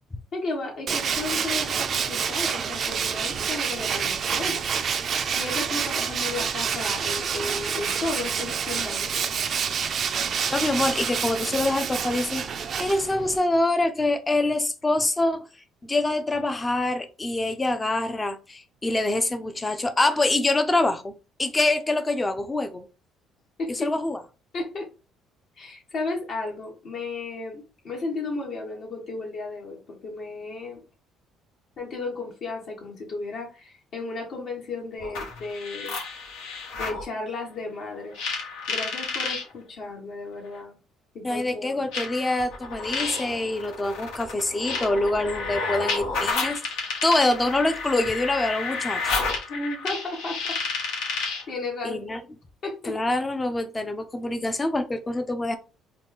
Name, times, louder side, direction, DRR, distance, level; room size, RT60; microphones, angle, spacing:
voice 1, 0.3-4.6 5.3-9.1 23.6-23.7 24.5-24.9 25.6-30.8 31.8-36.0 36.7-38.1 38.7-40.7 41.1-41.7 49.5-50.4 51.5-52.0 52.6-53.0, left 3 dB, 60° left, 1.4 m, -34 dB
Tools, 0.9-13.4, right 7 dB, 45° right, 0.4 m, -28 dB
voice 2, 10.5-12.4 12.8-15.5 15.8-21.1 21.4-22.9 23.7-24.2 41.2-46.6 47.0-49.0 51.8-52.2 52.8-55.6, left 2 dB, 20° left, 0.5 m, -25 dB
sound 1, 35.0-37.0 38.1-39.4 40.5-40.6 41.9-51.5, left 4 dB, 85° left, 1.2 m, -31 dB
3.8 x 2.2 x 3.6 m
cardioid pair, 105°, 0 cm